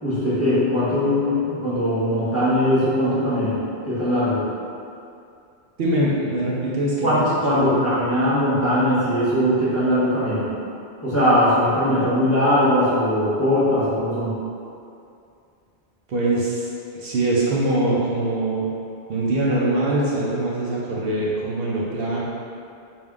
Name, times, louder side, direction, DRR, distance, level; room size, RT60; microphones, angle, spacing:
voice 1, 0.0-3.6 3.8-4.4 7.0-10.5 11.0-14.4, equal, 15° left, -12 dB, 1.0 m, -20 dB
voice 2, 5.8-7.8 16.1-18.6 19.1-22.2, right 1 dB, 65° right, -6 dB, 0.8 m, -23 dB
3.5 x 2.6 x 3.5 m, 2.5 s
omnidirectional pair, 1.1 m